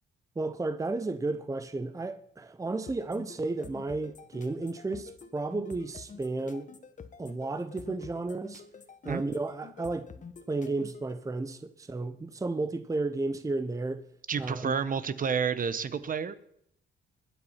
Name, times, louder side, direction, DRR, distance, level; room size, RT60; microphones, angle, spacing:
voice 1, 0.4-6.7 7.2-8.6 9.0-10.1 10.5-14.1 14.4-14.7, right 3 dB, 15° right, 0.8 m, -33 dB
sound 1, 2.9-11.1, left 6 dB, 40° left, 1.4 m, -47 dB
voice 2, 14.3-16.4, right 6 dB, 45° right, 1.1 m, -30 dB
21.5 x 7.9 x 5.8 m
cardioid pair, 90°, 20 cm